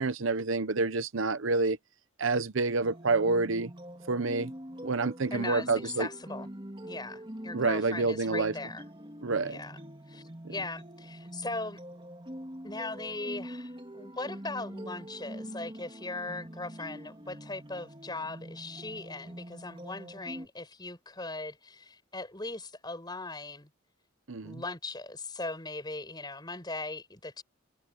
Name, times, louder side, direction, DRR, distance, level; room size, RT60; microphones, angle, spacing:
voice 1, 0.0-1.8 2.2-3.7 4.1-4.5 4.8-6.1 7.5-8.5 9.2-9.6 24.3-24.6, right 3 dB, 65° right, 0.8 m, -28 dB
sound 1, 2.8-20.5, equal, 25° right, 3.2 m, -44 dB
voice 2, 5.3-5.7 6.0-6.5 6.8-8.8 9.4-9.8 10.1-11.8 12.6-23.7 24.4-27.4, left 2 dB, 20° left, 6.4 m, -39 dB
head